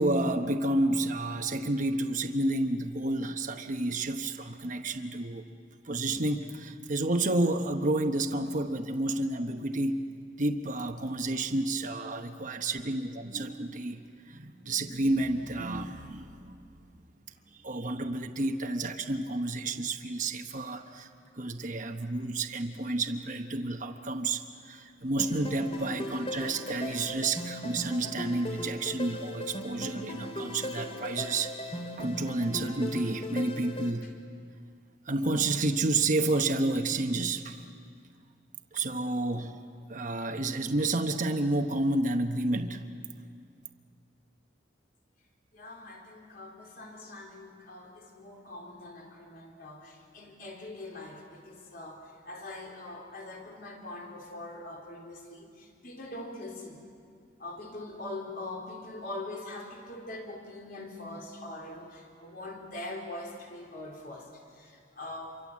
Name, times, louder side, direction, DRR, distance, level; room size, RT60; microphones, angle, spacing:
voice 1, 0.0-5.4 5.8-10.1 10.4-14.0 14.3-16.5 17.6-21.1 21.3-34.1 35.1-37.7 38.7-39.6 39.9-42.8, right 2 dB, 45° right, 5 dB, 1.1 m, -30 dB
sound 1, 25.2-33.9, left 1 dB, 30° left, 2.4 m, -38 dB
voice 2, 45.5-56.8 57.4-65.4, left 2 dB, 50° left, 0 dB, 4.2 m, -43 dB
27.5 x 24.0 x 7.5 m, 2.2 s
head